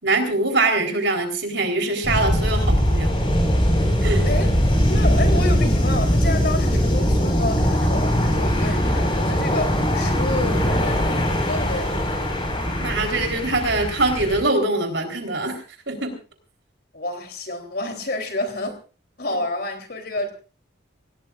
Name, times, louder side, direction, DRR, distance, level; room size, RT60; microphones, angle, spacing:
voice 1, 0.0-3.1 4.0-4.3 12.8-16.1, right 2 dB, 65° right, 4.1 m, -23 dB
sound 1, 2.0-14.4, equal, 25° left, 5.3 m, -21 dB
voice 2, 4.2-4.6 4.9-12.0 16.9-18.7 19.2-20.3, left 2 dB, 50° left, 3.7 m, -29 dB
26.5 x 18.0 x 2.6 m
head